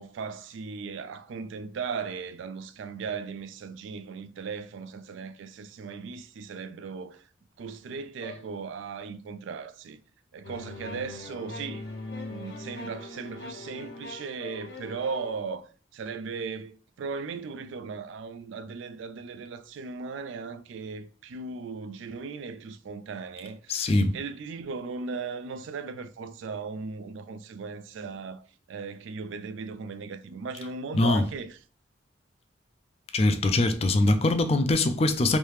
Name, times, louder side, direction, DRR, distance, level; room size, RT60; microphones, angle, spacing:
voice 1, 0.0-7.3 7.6-10.0 10.3-11.9 12.3-28.4 28.7-31.6, right 5 dB, 80° right, 0.3 m, -37 dB
sound 1, 10.4-15.4, left 2 dB, 60° left, 0.7 m, -41 dB
voice 2, 23.7-24.2 30.9-31.2 33.1-35.4, left 2 dB, 30° left, 0.3 m, -23 dB
3.2 x 2.7 x 3.1 m
head